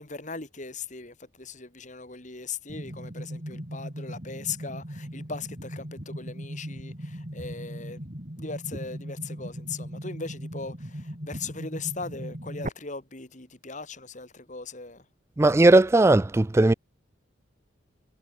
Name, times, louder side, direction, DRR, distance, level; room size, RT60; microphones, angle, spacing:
voice 1, 0.0-8.0 8.4-15.0, left 4 dB, 40° left, 2.8 m, -39 dB
sound 1, 2.7-12.7, equal, 40° right, 4.3 m, -38 dB
voice 2, 15.4-16.7, right 2 dB, 15° right, 0.3 m, -18 dB
head